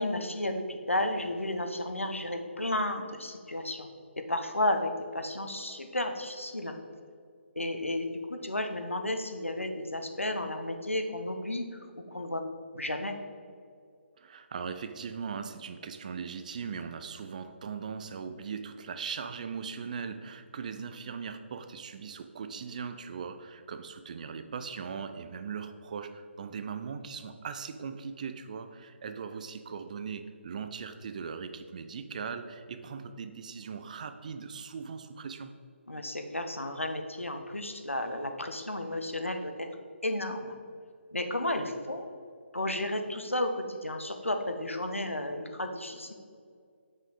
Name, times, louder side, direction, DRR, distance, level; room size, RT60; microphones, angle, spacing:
voice 1, 0.0-3.9 4.2-6.7 7.6-11.6 12.1-12.5 12.7-13.2 35.9-39.7 40.0-40.5 41.1-42.1 42.5-46.1, left 1 dB, 85° left, 6 dB, 0.7 m, -32 dB
voice 2, 14.2-35.5, right 6 dB, 35° right, 9 dB, 0.4 m, -39 dB
6.1 x 5.2 x 4.0 m, 2.2 s
figure-of-eight pair, 145°, 7 cm